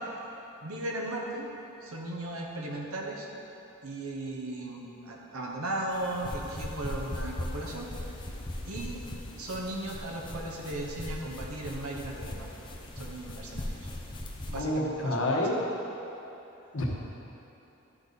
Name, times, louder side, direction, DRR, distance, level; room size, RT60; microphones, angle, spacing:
voice 1, 0.6-1.5 1.8-3.3 3.8-7.9 8.7-9.0 9.4-12.5 13.0-13.7 14.4-15.3, right 1 dB, 80° right, -1 dB, 1.1 m, -36 dB
sound 1, 5.9-14.6, left 1 dB, 20° left, 0.7 m, -39 dB
voice 2, 14.5-15.5 16.7-16.9, left 1 dB, 60° left, -3 dB, 1.3 m, -28 dB
11.5 x 5.1 x 4.1 m, 3.0 s
head